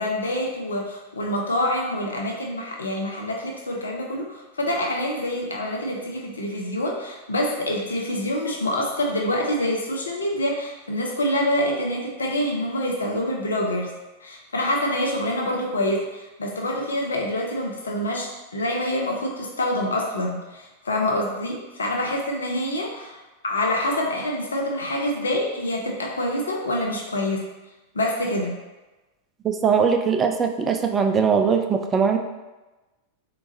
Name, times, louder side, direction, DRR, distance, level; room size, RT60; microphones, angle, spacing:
voice 1, 0.0-13.9 14.2-23.2 23.4-27.4 27.9-28.5, left 1 dB, 70° left, 0 dB, 0.5 m, -26 dB
voice 2, 29.4-32.2, right 6 dB, 20° right, 6 dB, 0.3 m, -21 dB
3.6 x 3.0 x 2.5 m, 1.1 s
figure-of-eight pair, 90°, 0 cm